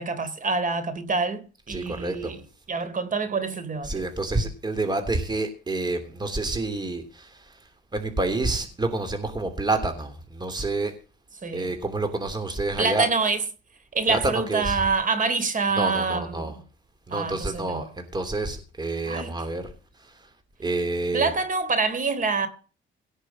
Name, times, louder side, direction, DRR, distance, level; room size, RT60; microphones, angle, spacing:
voice 1, 0.0-1.4 1.7-2.4 2.7-4.0 11.4-11.7 12.8-13.4 13.9-16.6 17.1-17.8 19.1-19.3 21.1-22.5, right 4 dB, 40° right, 3.5 m, -26 dB
voice 2, 1.7-2.3 3.8-7.3 7.9-10.9 11.5-13.1 14.1-14.8 15.8-16.5 17.1-19.6 20.6-21.3, right 2 dB, 20° right, 3.1 m, -28 dB
18.0 x 6.7 x 7.5 m
cardioid pair, 90°, 20 cm